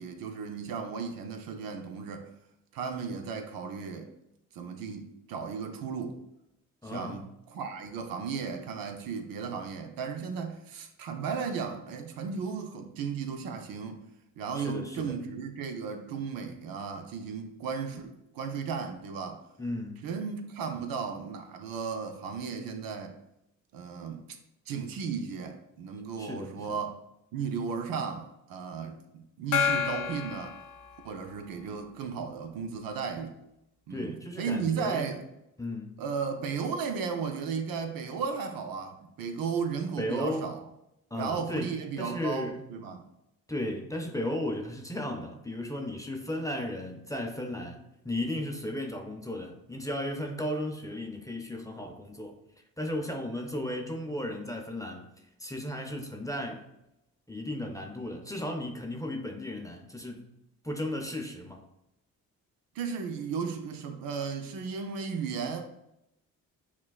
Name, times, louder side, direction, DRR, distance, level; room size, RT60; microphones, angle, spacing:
voice 1, 0.0-2.3 2.7-4.1 4.5-6.2 6.8-14.0 14.4-19.4 20.0-23.2 23.7-24.2 24.7-27.0 27.3-30.6 31.0-33.4 33.9-35.2 36.0-40.6 41.1-43.0 62.7-65.6, right 6 dB, 70° right, 0.6 m, -35 dB
voice 2, 6.8-7.3 14.5-15.2 19.6-20.0 26.2-26.8 33.9-35.1 35.6-36.0 40.0-40.5 41.1-42.6 43.5-52.4 52.8-55.1 55.4-56.6 57.3-60.3 60.6-61.6, left 1 dB, 10° left, 0.5 m, -35 dB
Gong, 29.5-31.5, left 7 dB, 60° left, 0.5 m, -31 dB
5.9 x 2.3 x 2.3 m
supercardioid pair, 60°, 37 cm